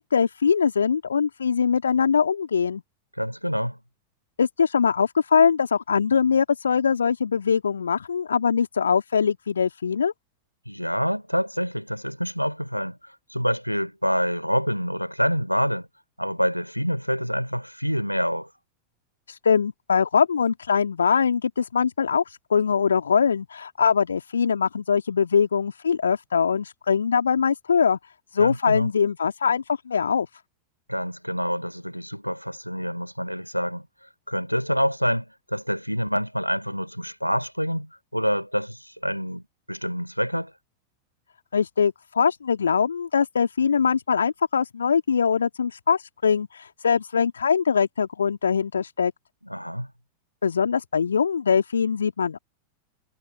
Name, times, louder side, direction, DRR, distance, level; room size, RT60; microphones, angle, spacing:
voice 1, 0.0-2.8 4.4-10.1 19.3-28.0 28.3-30.3 41.5-49.1 50.4-52.4, left 6 dB, 70° left, 2.3 m, -22 dB
voice 2, 3.2-3.8 10.7-15.9 16.2-18.5 28.4-28.9 30.9-33.9 34.3-40.5 49.4-49.9, equal, 90° left, 4.7 m, -27 dB
figure-of-eight pair, 90°, 0 cm